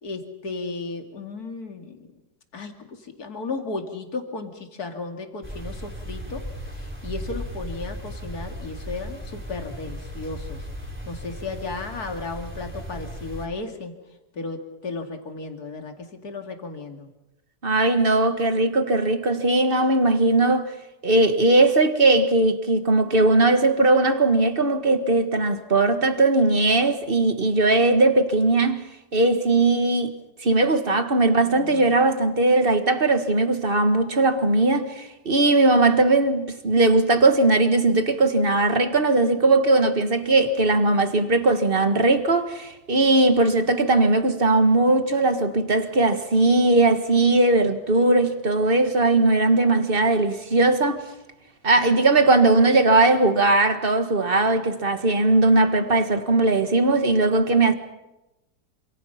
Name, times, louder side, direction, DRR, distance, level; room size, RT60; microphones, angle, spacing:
voice 1, 0.0-2.0 2.5-6.4 6.8-10.6 11.0-13.9 14.3-17.1 31.3-31.9, left 3 dB, 60° left, 3.0 m, -34 dB
sound 1, 5.4-13.5, equal, 5° right, 3.5 m, -36 dB
voice 2, 17.6-20.7 21.0-28.8 29.1-51.0 51.6-57.7, right 2 dB, 35° right, 1.8 m, -19 dB
27.5 x 26.5 x 5.8 m
omnidirectional pair, 1.9 m